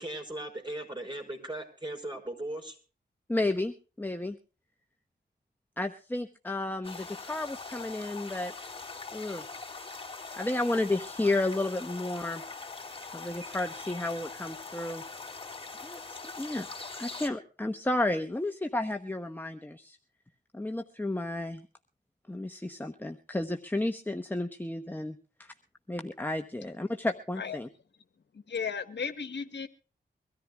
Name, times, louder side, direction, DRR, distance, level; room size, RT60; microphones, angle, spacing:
voice 1, 0.0-2.8, right 1 dB, 25° right, 4 dB, 5.3 m, -38 dB
voice 2, 3.3-4.4 5.8-8.5 9.1-9.4 10.4-12.4 13.1-15.0 15.8-16.7 17.0-20.0 20.5-21.6 22.3-25.5 25.9-27.7, left 2 dB, 10° left, 6 dB, 1.0 m, -32 dB
sound 1, 6.8-17.3, left 4 dB, 30° left, 3.2 m, -42 dB
voice 3, 28.5-29.7, left 6 dB, 70° left, 9 dB, 1.3 m, -34 dB
24.0 x 13.5 x 2.3 m, 0.38 s
cardioid pair, 55°, 19 cm